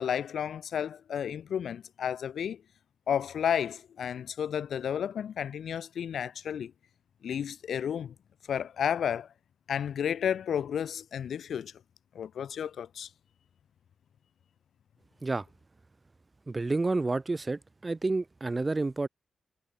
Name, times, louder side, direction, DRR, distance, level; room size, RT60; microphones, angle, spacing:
voice 1, 0.0-2.6 3.1-6.7 7.2-8.1 8.5-9.3 9.7-11.7 12.2-13.1, left 8 dB, 90° left, 1.6 m, -32 dB
voice 2, 16.5-19.1, right 3 dB, 25° right, 2.2 m, -29 dB
wide cardioid pair, 150°, 0 cm